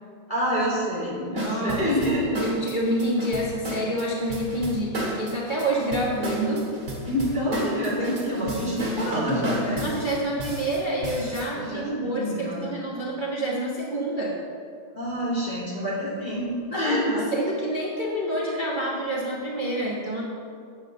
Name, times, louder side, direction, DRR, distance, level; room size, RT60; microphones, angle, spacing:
voice 1, 0.3-2.4 7.1-9.9 11.5-12.7 14.9-17.3, equal, 15° left, -7 dB, 2.9 m, -27 dB
sound 1, 1.4-11.5, right 1 dB, 35° right, 2.8 m, -32 dB
voice 2, 1.4-1.9 2.4-6.6 9.8-14.4 16.7-20.2, right 1 dB, 60° right, -4 dB, 0.5 m, -28 dB
9.0 x 7.6 x 7.5 m, 2.3 s
omnidirectional pair, 3.4 m